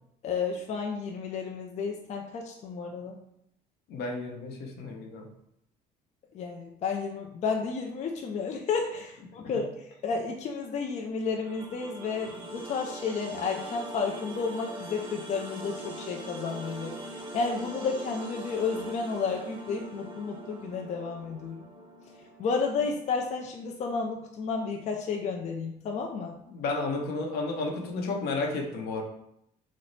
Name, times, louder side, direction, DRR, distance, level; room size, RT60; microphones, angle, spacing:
voice 1, 0.2-3.2 6.3-21.7 22.4-26.4, left 5 dB, 45° left, 2 dB, 0.4 m, -32 dB
voice 2, 3.9-5.3 26.5-29.0, left 3 dB, 70° left, 1 dB, 0.7 m, -32 dB
sound 1, 11.4-22.5, right 1 dB, 30° right, 0.7 m, -42 dB
3.1 x 2.0 x 3.9 m, 0.77 s
cardioid pair, 110°, 17 cm